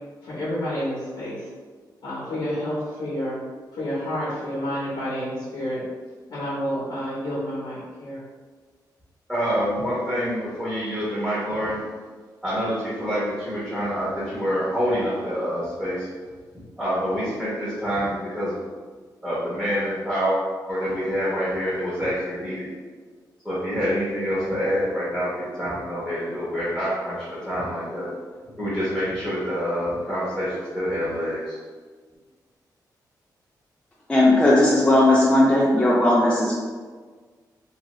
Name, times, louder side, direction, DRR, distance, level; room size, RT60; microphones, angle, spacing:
voice 1, 0.2-1.5 2.0-3.4 3.7-5.8 6.3-8.2, equal, 80° left, -8 dB, 0.8 m, -29 dB
voice 2, 9.3-11.8 12.4-16.1 16.8-18.6 19.2-20.4 20.7-22.7 23.4-28.1 28.4-31.6, equal, 5° right, -10 dB, 0.9 m, -26 dB
voice 3, 34.1-36.5, left 1 dB, 15° left, -6 dB, 0.4 m, -17 dB
2.7 x 2.4 x 3.0 m, 1.5 s
wide cardioid pair, 125°, 7 cm